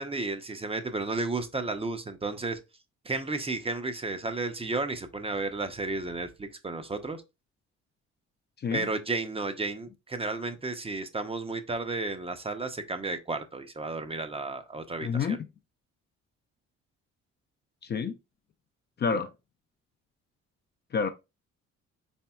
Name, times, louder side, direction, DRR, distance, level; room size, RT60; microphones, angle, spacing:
voice 1, 0.0-2.6 3.0-7.2 8.7-15.4, right 3 dB, 20° right, 0.6 m, -33 dB
voice 2, 15.0-15.5 17.8-18.2 19.0-19.3 20.9-21.1, left 5 dB, 35° left, 0.4 m, -28 dB
4.3 x 3.3 x 2.3 m
cardioid pair, 90°, 30 cm